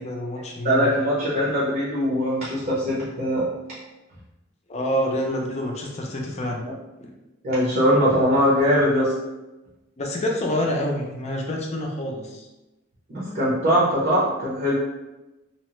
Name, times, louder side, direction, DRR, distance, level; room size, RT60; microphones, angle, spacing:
voice 1, 0.0-0.9 4.7-6.6 10.0-12.5, left 1 dB, 35° left, 0 dB, 0.5 m, -27 dB
voice 2, 0.6-3.5 6.7-6.8 7.4-9.1 13.1-14.7, equal, 50° right, -8 dB, 0.8 m, -21 dB
2.8 x 2.1 x 3.0 m, 1.0 s
head